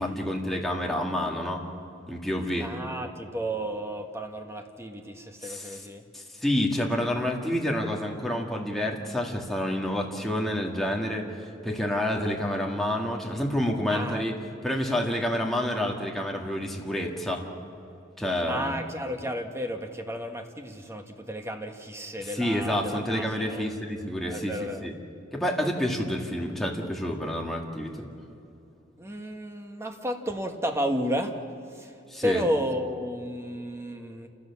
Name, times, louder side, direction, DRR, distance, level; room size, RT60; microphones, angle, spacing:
voice 1, 0.0-1.6 2.1-2.7 5.4-5.9 6.1-14.3 14.6-17.5 18.2-18.8 22.2-24.5 24.8-24.9 25.3-28.1 32.1-32.4, left 1 dB, ahead, -1 dB, 2.1 m, -29 dB
voice 2, 2.6-6.0 13.9-14.3 18.3-23.6 24.3-24.9 29.0-31.3 31.7-34.3, equal, 15° right, 4 dB, 1.5 m, -32 dB
28.5 x 16.0 x 7.2 m, 2.8 s
head